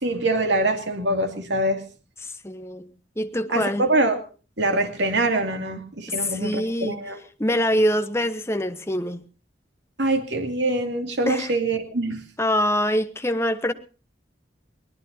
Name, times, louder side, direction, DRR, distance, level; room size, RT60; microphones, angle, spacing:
voice 1, 0.0-1.8 3.5-4.2 4.6-7.2 10.0-12.2, right 2 dB, 75° right, 2.5 m, -24 dB
voice 2, 2.4-3.9 6.2-7.0 7.4-9.2 11.3-11.5 12.4-13.7, equal, 15° left, 1.0 m, -24 dB
22.5 x 18.5 x 2.8 m
head